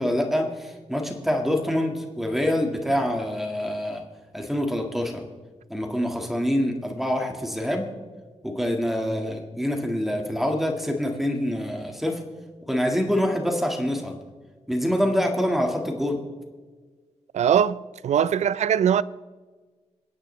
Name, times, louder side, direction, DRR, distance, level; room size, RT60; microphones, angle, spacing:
voice 1, 0.0-4.0 4.3-5.2 5.7-7.9 8.4-12.2 12.7-14.2 14.7-16.2, equal, ahead, 1.9 m, -25 dB
voice 2, 17.3-19.0, right 8 dB, 75° right, 0.4 m, -21 dB
27.0 x 9.9 x 3.3 m
wide cardioid pair, 105°, 12 cm